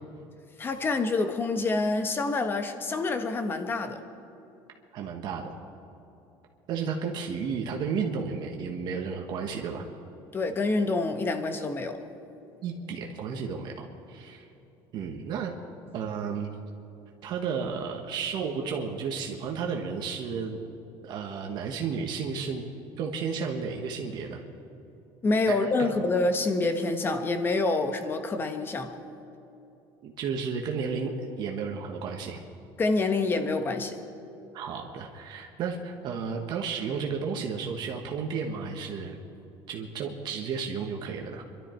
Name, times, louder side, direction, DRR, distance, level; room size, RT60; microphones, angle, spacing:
voice 1, 0.6-4.0 10.3-12.0 25.2-28.9 32.8-34.0, left 3 dB, 25° left, 7 dB, 1.2 m, -27 dB
voice 2, 4.9-5.5 6.7-9.9 12.6-14.4 14.9-15.5 15.9-16.5 17.2-22.7 23.0-24.4 25.5-25.9 30.0-31.1 31.4-32.4 34.5-39.2 39.7-41.4, right 6 dB, 50° right, 2 dB, 1.3 m, -33 dB
25.0 x 12.5 x 4.5 m, 2.9 s
cardioid pair, 145°, 9 cm